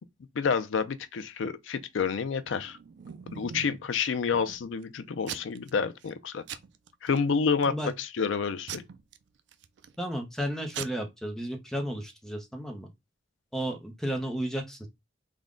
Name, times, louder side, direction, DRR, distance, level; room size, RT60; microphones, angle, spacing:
voice 1, 0.4-2.8 3.3-6.4 7.0-8.8, left 5 dB, 85° left, 0.4 m, -29 dB
Packing tape duct tape / Tearing, 2.5-3.9 4.3-4.8 5.2-5.7 6.0-6.2 6.5-7.2 7.6-8.0 8.7-10.0 10.4-10.5 10.7-10.9, right 8 dB, 70° right, 0.4 m, -41 dB
voice 2, 10.0-12.9 13.5-14.9, equal, ahead, 0.6 m, -33 dB
3.6 x 2.1 x 3.6 m
head